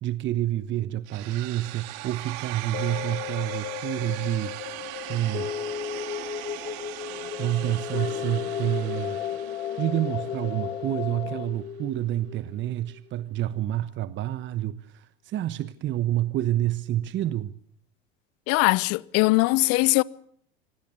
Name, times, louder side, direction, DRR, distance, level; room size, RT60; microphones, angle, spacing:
voice 1, 0.0-4.5 5.1-5.5 7.4-9.2 9.8-17.5, right 13 dB, 40° right, 1.1 m, -28 dB
sound 1, 1.1-11.0, right 17 dB, 60° right, 2.2 m, -40 dB
sound 2, 2.7-13.1 13.6-13.7, left 9 dB, 30° left, 1.3 m, -35 dB
sound 3, 5.1-11.5, left 12 dB, 75° left, 1.5 m, -38 dB
voice 2, 18.5-20.0, left 23 dB, 50° left, 0.9 m, -21 dB
25.0 x 17.5 x 8.4 m
hypercardioid pair, 90°, 31 cm